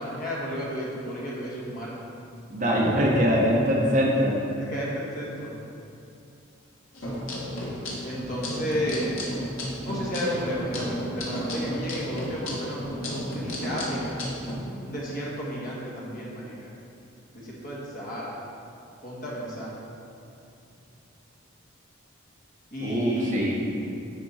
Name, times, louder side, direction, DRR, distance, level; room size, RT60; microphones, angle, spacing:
voice 1, 0.0-2.0 4.6-5.5 8.0-9.1 9.8-14.1 14.7-16.7 17.3-18.4 19.0-19.7 22.7-23.8, equal, 40° left, -5 dB, 1.6 m, -33 dB
voice 2, 2.5-4.4 22.8-23.6, equal, 40° right, -3 dB, 1.1 m, -22 dB
sound 1, 6.9-14.5, equal, 75° left, 1.5 m, -33 dB
9.5 x 4.5 x 4.4 m, 2.6 s
head